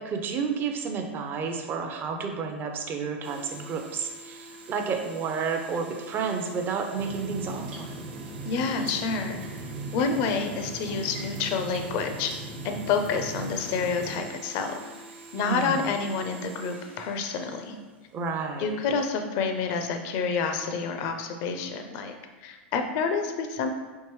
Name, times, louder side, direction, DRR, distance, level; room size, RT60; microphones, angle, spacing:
voice 1, 0.0-7.9 15.4-15.8 18.1-18.8, right 5 dB, 35° right, 3 dB, 0.5 m, -31 dB
sound 1, 3.2-18.4, right 2 dB, 80° right, 0.8 m, -47 dB
sound 2, 7.0-14.2, right 2 dB, 60° right, 1.0 m, -39 dB
voice 2, 8.4-9.4 9.9-12.3 12.6-14.8 15.3-17.8 18.6-22.1 22.4-23.7, left 5 dB, 55° left, 5 dB, 0.5 m, -28 dB
4.5 x 2.9 x 3.1 m, 1.3 s
hypercardioid pair, 105°, 6 cm